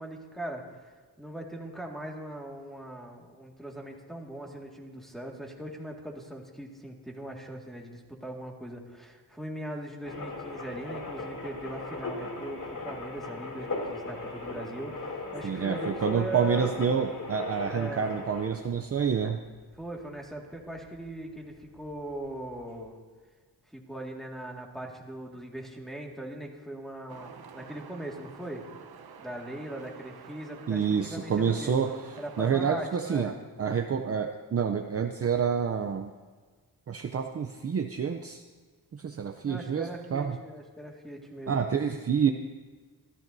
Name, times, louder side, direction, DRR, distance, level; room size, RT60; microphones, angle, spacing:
voice 1, 0.0-16.7 17.6-18.1 19.8-23.0 23.7-28.6 29.2-31.8 32.2-33.4 39.5-41.6, right 1 dB, ahead, 0 dB, 1.9 m, -40 dB
sound 1, 10.0-21.0 21.3-21.4 21.6-22.8, left 3 dB, 55° left, 2.8 m, -38 dB
voice 2, 15.4-19.4 30.7-31.9 32.4-33.3 33.6-36.1 36.9-38.4 38.9-40.4 41.5-42.3, right 7 dB, 35° right, 6 dB, 0.6 m, -28 dB
sound 2, 27.1-32.5, right 6 dB, 65° right, 0.9 m, -49 dB
26.0 x 13.5 x 2.7 m, 1.5 s
wide cardioid pair, 135°, 39 cm